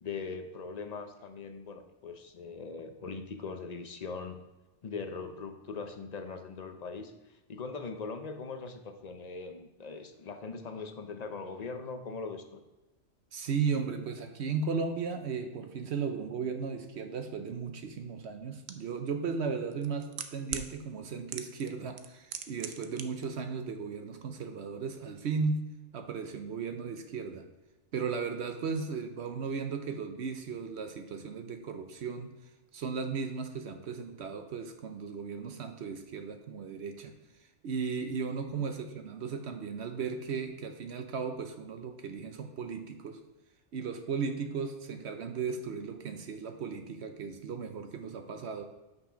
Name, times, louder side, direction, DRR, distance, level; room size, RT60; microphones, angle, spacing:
voice 1, 0.0-4.4 4.8-12.6 38.5-38.7, left 4 dB, 45° left, 6 dB, 0.6 m, -41 dB
voice 2, 13.3-25.7 25.9-27.5 27.9-32.3 32.7-37.1 37.6-43.2 43.7-48.6, right 5 dB, 60° right, 6 dB, 0.9 m, -36 dB
sound 1, 18.7-18.8 19.7-20.7 21.3-21.7 22.0-23.0 23.3-23.4, right 9 dB, 90° right, 1.0 m, -37 dB
6.5 x 5.8 x 4.9 m, 1.1 s
omnidirectional pair, 1.3 m